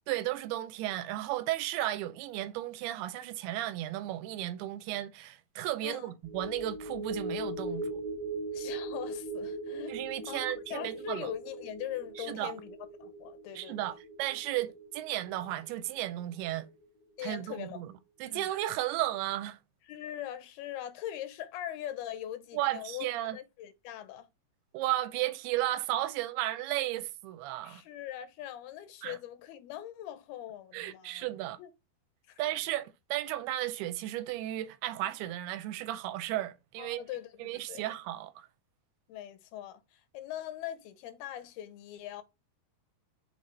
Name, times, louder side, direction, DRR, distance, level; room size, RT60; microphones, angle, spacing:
voice 1, 0.1-8.0 9.9-11.3 12.2-12.5 13.6-16.7 17.2-17.9 18.2-19.6 22.5-23.4 24.7-27.8 29.0-29.2 30.7-31.6 32.4-37.0 37.4-38.5, right 14 dB, 85° right, 2.5 m, -34 dB
sound 1, 6.2-16.8 17.2-17.3, right 1 dB, 40° left, 0.5 m, -40 dB
voice 2, 8.5-10.0 10.3-10.4 10.7-13.9 17.2-17.8 18.3-18.5 19.9-24.3 27.6-31.3 31.6-31.7 32.3-32.4 36.8-37.9 39.1-42.2, left 12 dB, 80° left, 2.4 m, -41 dB
7.2 x 4.0 x 3.2 m
omnidirectional pair, 4.7 m